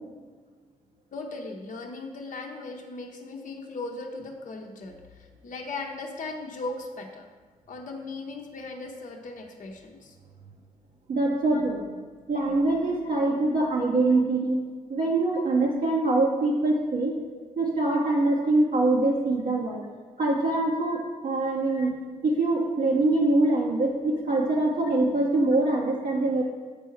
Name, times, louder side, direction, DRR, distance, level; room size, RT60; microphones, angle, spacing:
voice 1, 1.1-7.3 7.7-10.1 11.5-11.6 12.8-13.0 14.1-14.6 14.8-14.9 15.3-16.0 17.3-17.4 19.1-19.3 19.8-20.0 20.9-21.0 21.7-22.2 24.0-24.2, left 3 dB, 50° left, 1 dB, 0.8 m, -39 dB
voice 2, 11.1-11.8 12.3-14.6 14.9-17.1 17.6-19.8 20.2-22.0 22.2-26.4, right 2 dB, 60° right, -4 dB, 1.0 m, -24 dB
6.9 x 4.6 x 4.5 m, 1.4 s
hypercardioid pair, 45°, 17 cm